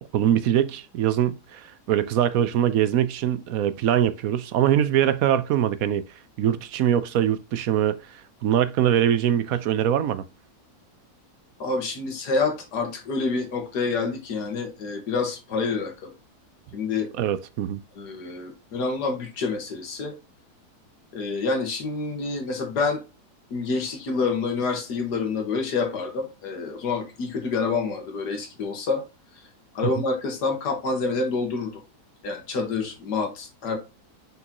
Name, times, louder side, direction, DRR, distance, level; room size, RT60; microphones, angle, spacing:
voice 1, 0.1-6.1 6.4-10.2 17.2-17.8 29.8-30.0, right 10 dB, 65° right, 1.0 m, -23 dB
voice 2, 11.6-16.1 16.7-17.1 18.0-20.2 21.1-23.0 23.5-29.0 29.7-31.7 32.2-33.8, left 4 dB, 80° left, 2.1 m, -27 dB
6.1 x 5.4 x 2.9 m
omnidirectional pair, 1.7 m